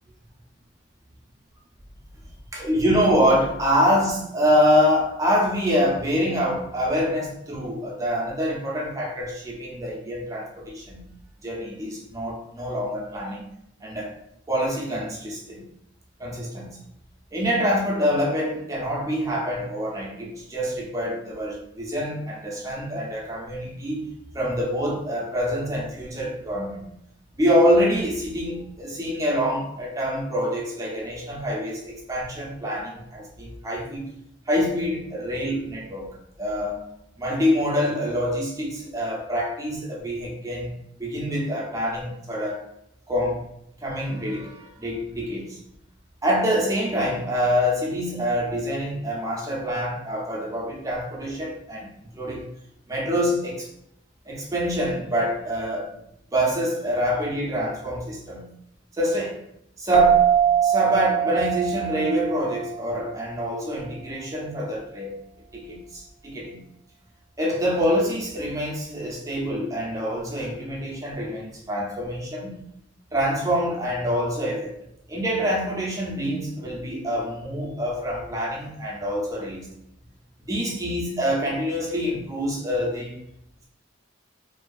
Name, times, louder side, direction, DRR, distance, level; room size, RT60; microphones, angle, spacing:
voice 1, 2.5-11.0 11.4-13.5 13.8-14.2 14.5-15.6 16.2-16.8 17.3-24.1 24.3-26.9 27.3-34.1 34.5-36.9 37.2-42.6 43.1-43.4 43.8-45.6 46.2-51.9 52.1-52.5 52.9-53.7 54.2-56.0 56.3-58.5 58.9-59.4 59.8-60.3 60.6-65.1 65.5-66.6 67.4-72.7 73.1-74.8 75.1-79.7 80.4-83.2, equal, 15° right, -3 dB, 0.5 m, -26 dB
sound 1, 59.9-63.2, right 9 dB, 85° right, 0.4 m, -22 dB
2.5 x 2.3 x 2.3 m, 0.78 s
head